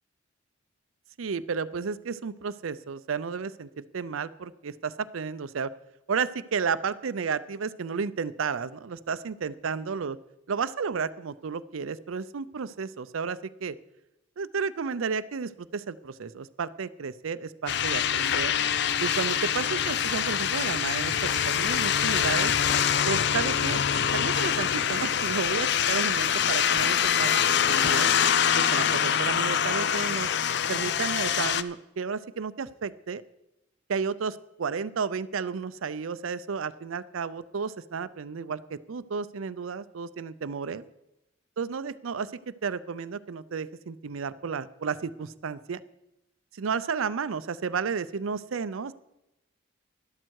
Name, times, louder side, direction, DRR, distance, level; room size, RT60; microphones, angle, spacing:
voice 1, 1.2-5.7 6.1-10.2 10.5-13.8 14.4-18.6 19.0-22.5 23.0-23.8 24.1-28.1 28.5-30.3 30.7-33.2 33.9-40.8 41.6-45.8 46.5-48.9, right 5 dB, 90° right, 15 dB, 0.5 m, -32 dB
sound 1, 17.7-31.6, left 8 dB, 55° left, 0.5 m, -25 dB
12.0 x 12.0 x 4.7 m, 0.93 s
head